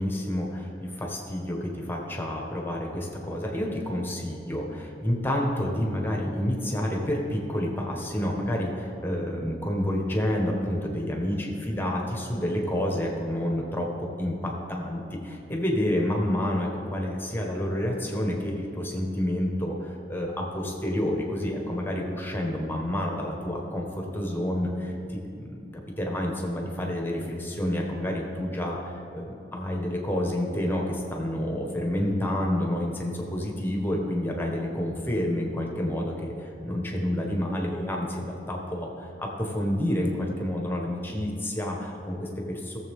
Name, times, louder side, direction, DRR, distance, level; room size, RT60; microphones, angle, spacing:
voice 1, 0.0-24.9 25.3-25.6 26.0-42.8, left 1 dB, 10° left, 0 dB, 1.4 m, -29 dB
17.5 x 7.3 x 3.7 m, 2.9 s
head